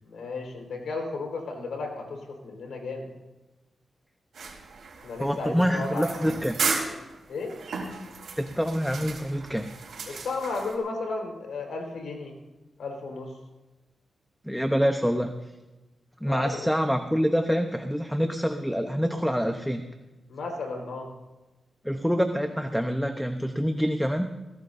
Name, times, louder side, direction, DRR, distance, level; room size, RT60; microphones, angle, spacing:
voice 1, 0.0-3.1 5.0-6.1 7.3-7.6 10.1-12.4 12.8-13.3 16.3-16.7 20.3-21.1, left 3 dB, 90° left, 1 dB, 4.3 m, -34 dB
sound 1, 4.3-10.8, right 4 dB, 80° right, 3.8 m, -35 dB
voice 2, 5.2-6.6 8.4-9.7 10.0-10.2 14.4-15.3 16.2-19.8 21.8-24.3, equal, ahead, 6 dB, 0.9 m, -26 dB
22.0 x 16.5 x 2.7 m, 1.1 s
wide cardioid pair, 100°, 0 cm